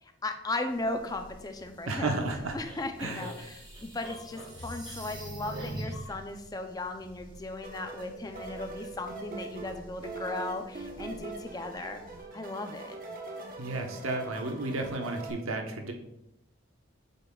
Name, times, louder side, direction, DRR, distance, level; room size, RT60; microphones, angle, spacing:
voice 1, 0.0-2.2 2.5-12.0 12.3-13.0, left 2 dB, 20° left, 6 dB, 0.5 m, -37 dB
sound 1, 0.7-12.2, left 1 dB, 40° left, 1.2 m, -53 dB
voice 2, 1.9-2.6 3.0-3.5 13.6-15.9, right 2 dB, 85° right, 3 dB, 1.0 m, -33 dB
sound 2, 2.6-6.1, right 1 dB, 25° right, 2.3 m, -41 dB
sound 3, 7.6-15.3, right 3 dB, 40° right, 1.1 m, -42 dB
8.2 x 7.1 x 2.3 m, 0.84 s
head